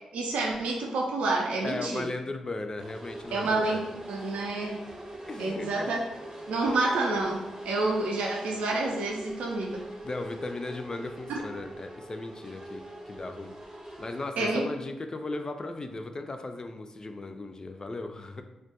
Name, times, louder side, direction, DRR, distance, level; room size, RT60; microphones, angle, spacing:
voice 1, 0.1-2.0 3.3-3.8 4.1-4.8 5.4-6.0 6.5-9.8 11.3-11.4 14.4-14.7, right 2 dB, 85° right, -1 dB, 0.3 m, -28 dB
voice 2, 1.6-3.8 5.3-5.9 10.0-13.5 14.0-18.4, left 2 dB, 35° left, 6 dB, 0.3 m, -37 dB
sound 1, 2.8-14.3, right 1 dB, 35° right, 0.7 m, -43 dB
2.2 x 2.1 x 2.8 m, 0.98 s
supercardioid pair, 45°, 2 cm